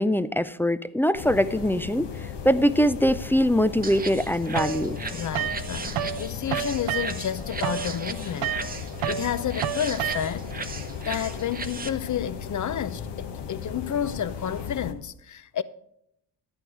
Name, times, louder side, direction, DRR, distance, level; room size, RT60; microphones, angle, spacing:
voice 1, 0.0-5.0, equal, 5° left, 0.3 m, -23 dB
sound 1, 1.1-14.9, left 7 dB, 60° left, 1.3 m, -36 dB
sound 2, 3.8-11.9, right 4 dB, 20° right, 0.8 m, -37 dB
sound 3, 4.6-6.2 6.5-10.6, right 10 dB, 75° right, 0.8 m, -30 dB
voice 2, 5.1-10.5 11.1-15.6, left 9 dB, 40° left, 0.7 m, -31 dB
11.5 x 9.1 x 4.8 m
supercardioid pair, 75°, 48 cm